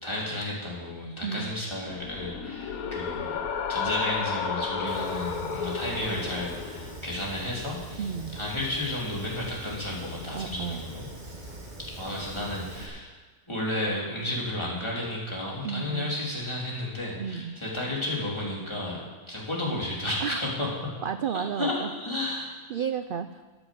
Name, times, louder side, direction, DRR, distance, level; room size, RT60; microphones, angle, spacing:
voice 1, 0.0-3.4 3.7-11.1 12.0-13.1 13.5-20.7 21.3-22.5, left 1 dB, 20° left, -5 dB, 3.1 m, -32 dB
voice 2, 1.2-1.5 8.0-8.4 10.3-10.9 15.6-16.1 17.2-17.6 20.2-20.5 21.0-21.9 22.7-23.5, right 7 dB, 85° right, 10 dB, 0.4 m, -32 dB
sound 1, 1.9-7.0, left 6 dB, 75° left, 1.4 m, -32 dB
Fire, 4.9-12.9, right 1 dB, 30° right, 2.2 m, -42 dB
14.0 x 7.9 x 7.6 m, 1.3 s
omnidirectional pair, 1.5 m